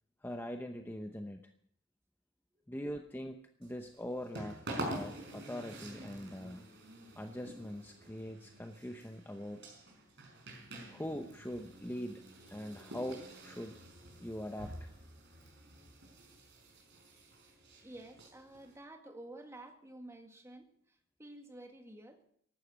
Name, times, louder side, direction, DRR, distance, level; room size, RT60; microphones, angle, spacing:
voice 1, 0.2-1.5 2.7-4.6 4.9-6.6 7.2-9.7 10.9-12.2 12.5-13.8 14.2-15.0, equal, 10° left, 5 dB, 0.8 m, -42 dB
voice 2, 2.5-2.8 17.8-22.2, right 1 dB, 15° right, 4 dB, 1.9 m, -51 dB
sound 1, 3.6-18.7, right 1 dB, 60° right, 5.4 m, -47 dB
15.0 x 12.0 x 6.3 m, 0.69 s
head